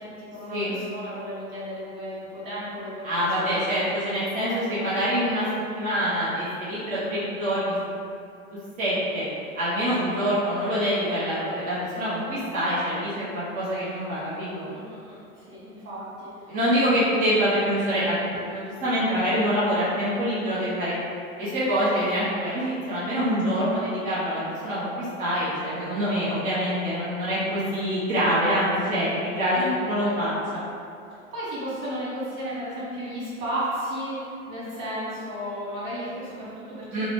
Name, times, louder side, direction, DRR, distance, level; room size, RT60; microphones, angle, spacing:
voice 1, 0.0-3.5 4.4-4.9 6.9-7.3 10.0-10.2 14.7-16.9 29.6-30.1 31.1-37.1, equal, 65° right, -10 dB, 1.4 m, -34 dB
voice 2, 3.0-5.5 5.7-7.9 8.5-9.2 9.5-14.7 16.5-18.2 18.5-20.9 21.4-30.6 36.9-37.1, equal, 20° right, -11 dB, 0.8 m, -25 dB
2.7 x 2.1 x 2.8 m, 2.4 s
hypercardioid pair, 105°, 43 cm